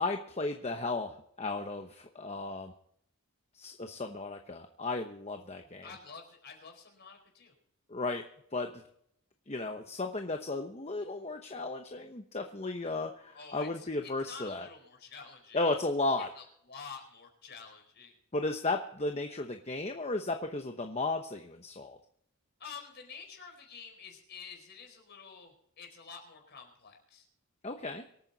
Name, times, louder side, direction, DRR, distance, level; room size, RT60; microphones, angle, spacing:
voice 1, 0.0-2.7 3.6-5.8 7.9-8.2 8.5-8.7 9.5-14.7 15.5-16.3 18.3-22.0 27.6-28.0, left 2 dB, 30° left, 5 dB, 1.0 m, -34 dB
voice 2, 5.8-7.5 13.3-15.6 16.3-18.2 22.6-27.2, left 5 dB, 50° left, 2 dB, 4.7 m, -49 dB
24.5 x 9.1 x 4.1 m, 0.69 s
head